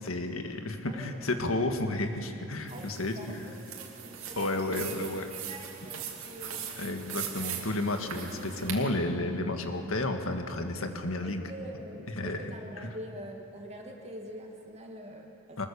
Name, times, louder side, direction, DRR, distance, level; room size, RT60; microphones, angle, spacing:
voice 1, 0.0-3.4 4.4-5.3 6.8-11.5 12.1-12.5 12.8-12.9 15.6-15.7, left 2 dB, 85° left, 5 dB, 1.8 m, -32 dB
voice 2, 0.9-1.2 2.7-5.0 5.3-6.7 11.2-15.7, equal, 30° right, 1 dB, 2.3 m, -45 dB
sound 1, 2.7-8.8, right 8 dB, 85° right, 2.8 m, -40 dB
24.0 x 21.0 x 7.0 m, 3.0 s
head